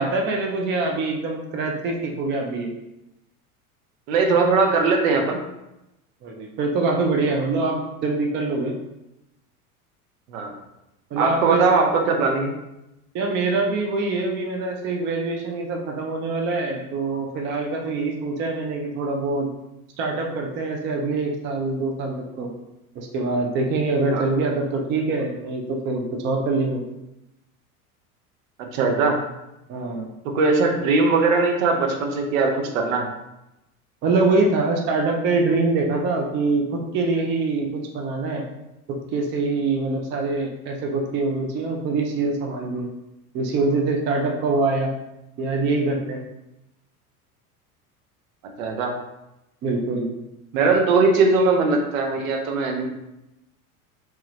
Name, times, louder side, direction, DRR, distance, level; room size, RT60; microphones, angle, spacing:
voice 1, 0.0-2.7 6.2-8.7 11.1-11.6 13.1-19.5 20.0-22.5 23.0-26.8 29.7-30.1 34.0-38.4 39.1-42.9 43.3-44.9 45.4-46.2 49.6-50.1, right 3 dB, 25° right, 1 dB, 0.4 m, -24 dB
voice 2, 4.1-5.4 10.3-10.6 11.2-12.5 24.1-24.2 28.7-29.2 30.3-33.1 48.6-48.9 50.5-52.9, right 4 dB, 60° right, 2 dB, 0.8 m, -20 dB
3.0 x 2.2 x 3.2 m, 0.91 s
hypercardioid pair, 80°, 45 cm